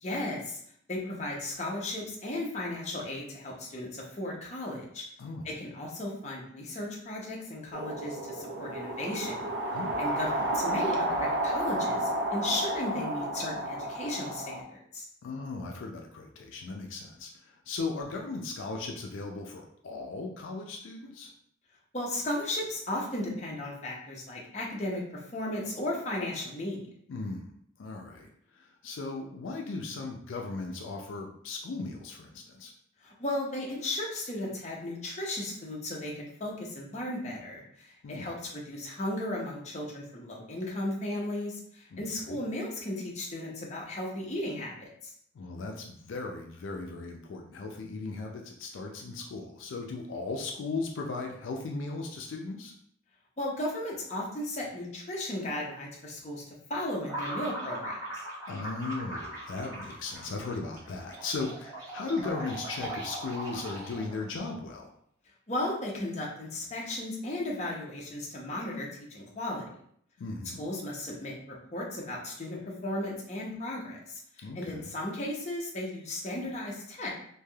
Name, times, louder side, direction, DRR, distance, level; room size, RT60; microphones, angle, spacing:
voice 1, 0.0-0.6 0.9-5.0 5.4-9.5 10.0-15.1 21.9-26.8 33.0-45.1 53.4-56.4 56.7-58.2 65.5-69.6 70.6-77.1, left 1 dB, 35° left, -3 dB, 0.6 m, -35 dB
sound 1, 7.7-14.6, right 1 dB, 60° right, 0.5 m, -31 dB
voice 2, 15.2-21.3 27.1-27.5 27.8-32.7 38.0-38.4 41.9-42.4 45.3-52.7 58.5-64.9 70.2-70.6 74.4-74.9, left 3 dB, 75° left, 1 dB, 0.4 m, -37 dB
sound 2, 57.0-64.3, right 1 dB, 20° right, 1.1 m, -40 dB
3.2 x 2.6 x 2.3 m, 0.67 s
head